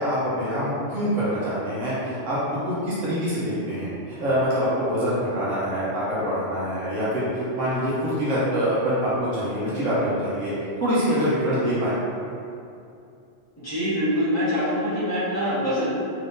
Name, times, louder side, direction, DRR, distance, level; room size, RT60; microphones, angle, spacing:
voice 1, 0.0-3.9 4.2-10.5 10.8-12.0, equal, 80° right, -10 dB, 1.1 m, -25 dB
voice 2, 13.6-15.8, equal, 15° left, -13 dB, 1.4 m, -24 dB
3.5 x 3.1 x 2.6 m, 2.6 s
omnidirectional pair, 1.3 m